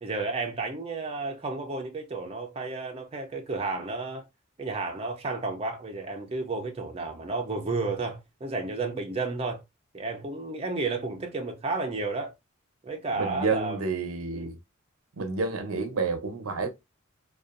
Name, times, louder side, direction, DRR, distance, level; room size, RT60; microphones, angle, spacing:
voice 1, 0.0-4.3 4.6-9.6 9.9-12.3 12.8-13.9 14.3-14.5, right 3 dB, 30° right, 0.5 m, -32 dB
voice 2, 13.2-14.6 15.2-16.7, right 4 dB, 85° right, 0.6 m, -29 dB
2.6 x 2.3 x 2.4 m
head